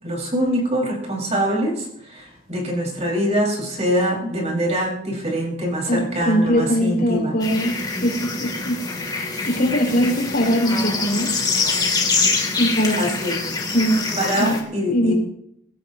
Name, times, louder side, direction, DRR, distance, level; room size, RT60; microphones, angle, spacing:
voice 1, 0.0-7.3 10.0-10.1 13.0-13.4 14.2-15.1, equal, 35° right, -1 dB, 5.0 m, -24 dB
voice 2, 5.9-8.8 9.5-11.3 12.6-13.1 13.7-14.0 14.4-14.6 14.9-15.1, equal, 50° left, -1 dB, 5.0 m, -21 dB
sound 1, 7.4-14.6, left 4 dB, 20° left, 2.8 m, -25 dB
24.5 x 13.5 x 2.9 m, 0.76 s
head